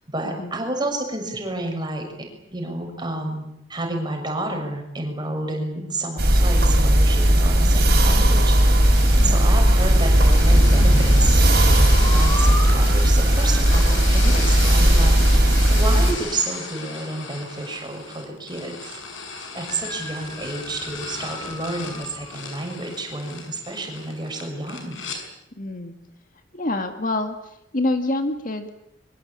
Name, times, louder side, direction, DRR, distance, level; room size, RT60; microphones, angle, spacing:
voice 1, 0.1-3.4 3.7-19.0 19.5-25.0, right 2 dB, 25° right, 2 dB, 6.5 m, -30 dB
sound 1, 6.2-16.1, right 1 dB, 55° right, 5.3 m, -16 dB
sound 2, 7.7-25.2, left 4 dB, 80° left, 6.3 m, -36 dB
sound 3, 12.0-14.0 19.7-22.4, left 1 dB, 20° left, 4.6 m, -35 dB
voice 2, 25.6-25.9 26.5-27.4 27.7-28.7, left 2 dB, 45° left, 6 dB, 2.0 m, -26 dB
23.5 x 23.5 x 8.7 m, 0.80 s
head